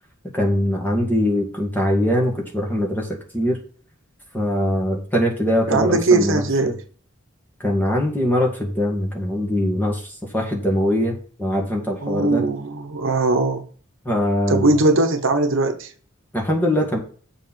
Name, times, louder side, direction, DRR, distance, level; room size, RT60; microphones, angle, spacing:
voice 1, 0.3-3.1 3.3-3.6 4.3-6.7 7.6-10.0 10.3-12.4 14.1-14.7 16.3-17.0, equal, 10° left, 2.1 m, -22 dB
voice 2, 5.7-6.8 12.0-13.6 14.5-15.9, right 3 dB, 70° right, 1.0 m, -19 dB
7.2 x 4.3 x 6.3 m
head